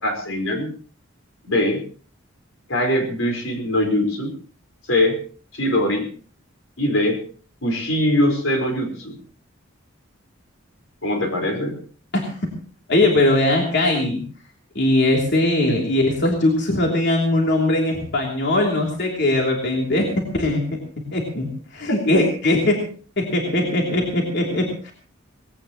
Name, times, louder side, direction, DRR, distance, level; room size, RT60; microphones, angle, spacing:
voice 1, 0.0-0.7 1.4-1.8 2.7-4.3 4.9-5.2 5.5-6.1 6.8-7.2 7.6-9.2 11.0-11.8 15.7-15.8 21.9-22.3, left 1 dB, 90° left, 4 dB, 4.9 m, -22 dB
voice 2, 12.9-14.2 14.7-20.8 21.1-22.9 23.2-24.9, left 1 dB, 60° left, 0 dB, 3.1 m, -20 dB
19.0 x 17.0 x 3.1 m, 0.41 s
head